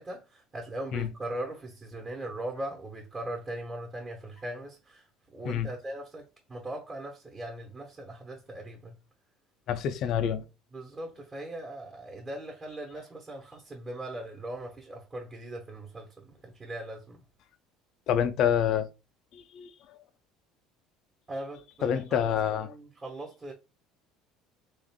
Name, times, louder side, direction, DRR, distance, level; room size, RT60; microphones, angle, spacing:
voice 1, 0.0-9.0 10.7-17.2 21.3-23.5, right 1 dB, 20° right, 1.2 m, -40 dB
voice 2, 9.7-10.4 18.1-18.9 19.3-19.7 21.8-22.7, left 9 dB, 60° left, 0.5 m, -27 dB
3.6 x 2.5 x 3.6 m
supercardioid pair, 105°, 0 cm